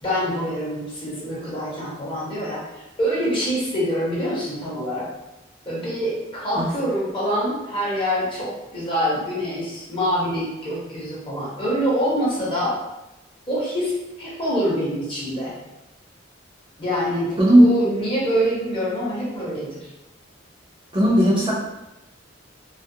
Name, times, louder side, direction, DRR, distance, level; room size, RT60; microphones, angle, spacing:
voice 1, 0.0-5.1 5.7-12.8 13.5-15.5 16.8-19.9, equal, 25° left, -7 dB, 0.8 m, -25 dB
voice 2, 20.9-21.5, right 1 dB, 25° right, -7 dB, 0.6 m, -15 dB
2.4 x 2.1 x 2.6 m, 0.95 s
head